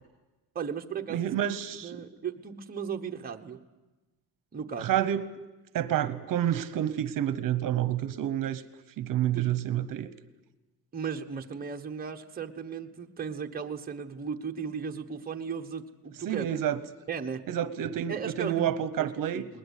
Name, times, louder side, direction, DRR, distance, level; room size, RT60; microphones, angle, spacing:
voice 1, 0.5-1.3 1.8-3.6 4.5-5.0 9.3-9.5 10.9-16.5 17.1-17.4 18.1-18.7 19.0-19.1 19.3-19.5, right 6 dB, 25° right, 3 dB, 1.1 m, -36 dB
voice 2, 1.1-2.0 4.8-5.3 5.7-8.6 9.0-10.1 16.3-16.8 17.5-19.4, right 11 dB, 60° right, 13 dB, 1.0 m, -29 dB
21.0 x 19.5 x 8.3 m, 1.1 s
cardioid pair, 175°, 37 cm